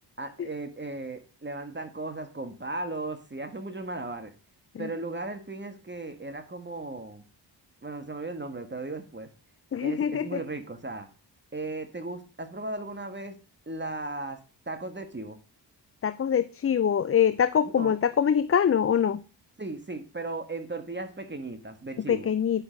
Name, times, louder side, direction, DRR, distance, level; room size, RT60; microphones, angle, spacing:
voice 1, 0.2-4.3 4.8-7.2 7.8-9.3 9.8-11.1 11.5-13.4 13.7-14.4 14.7-15.4 17.6-17.9 19.6-22.3, right 2 dB, 25° right, 8 dB, 1.5 m, -36 dB
voice 2, 9.7-10.4 16.0-19.2 22.1-22.6, left 8 dB, 35° left, 14 dB, 0.4 m, -24 dB
9.9 x 6.2 x 5.1 m, 0.34 s
cardioid pair, 75°, 44 cm